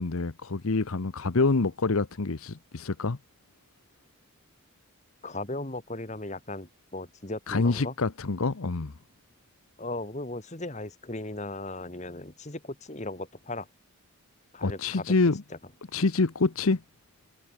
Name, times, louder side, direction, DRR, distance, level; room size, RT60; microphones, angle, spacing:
voice 1, 0.0-3.2 7.5-8.9 14.6-15.4 15.9-16.8, left 3 dB, 75° left, 0.9 m, -26 dB
voice 2, 5.2-7.9 9.8-13.7 14.5-15.0 15.5-15.6, left 2 dB, 30° left, 1.9 m, -37 dB
head